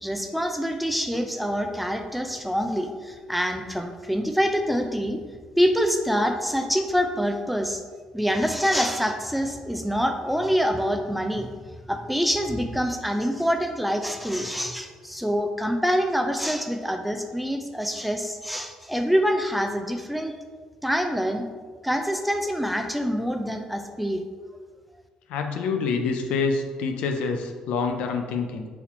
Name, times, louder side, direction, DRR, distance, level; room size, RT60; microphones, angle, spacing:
voice 1, 0.0-5.2 5.6-7.8 8.1-11.6 11.9-20.3 20.8-21.5 21.8-24.2, equal, ahead, 5 dB, 0.5 m, -25 dB
voice 2, 25.3-28.7, left 4 dB, 80° left, 5 dB, 0.4 m, -26 dB
4.1 x 2.8 x 4.2 m, 1.5 s
supercardioid pair, 65°, 2 cm